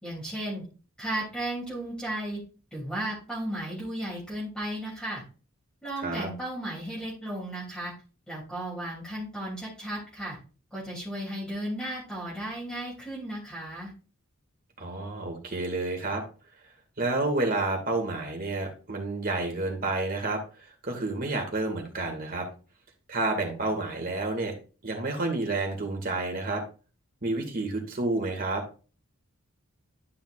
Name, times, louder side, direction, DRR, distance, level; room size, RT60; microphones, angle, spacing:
voice 1, 0.0-0.6 1.0-2.4 2.7-5.2 5.8-7.9 8.3-10.4 10.7-13.9, right 1 dB, 5° left, -7 dB, 3.1 m, -34 dB
voice 2, 6.0-6.3 14.8-16.2 17.0-20.4 20.8-22.5 23.1-24.5 24.8-26.6 27.2-28.6, right 2 dB, 40° right, 2 dB, 2.2 m, -29 dB
11.5 x 5.6 x 2.5 m, 0.34 s
head